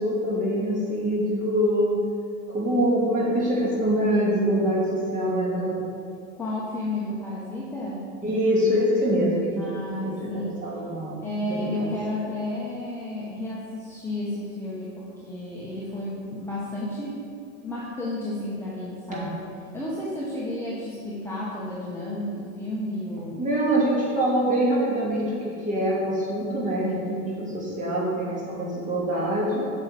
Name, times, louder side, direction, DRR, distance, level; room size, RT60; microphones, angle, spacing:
voice 1, 0.0-1.9 2.5-5.8 8.2-9.6 10.0-11.2 11.5-11.9 19.1-19.3 23.4-27.0 27.4-29.7, equal, 15° right, -5 dB, 2.3 m, -24 dB
voice 2, 6.4-8.0 9.6-10.6 11.2-17.2 17.6-19.4 19.7-23.5 27.0-27.5, left 1 dB, 5° left, -8 dB, 1.2 m, -32 dB
8.2 x 6.5 x 5.0 m, 2.4 s
hypercardioid pair, 135°, 45 cm